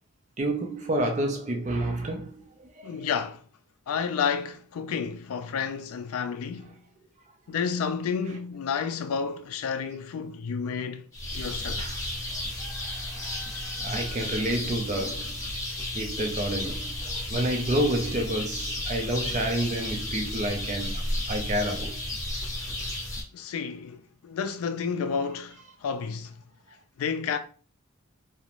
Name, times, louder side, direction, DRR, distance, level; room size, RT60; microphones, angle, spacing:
voice 1, 0.4-3.1 11.8-12.0 13.8-15.3 15.9-22.0, right 1 dB, 30° right, 0.4 m, -29 dB
voice 2, 2.8-3.4 3.9-6.8 7.5-11.1 11.3-11.9 23.3-26.4 27.0-27.4, left 6 dB, 75° left, 0.3 m, -31 dB
sound 1, 11.1-23.2, left 1 dB, 15° left, 0.8 m, -33 dB
2.9 x 2.0 x 2.4 m
head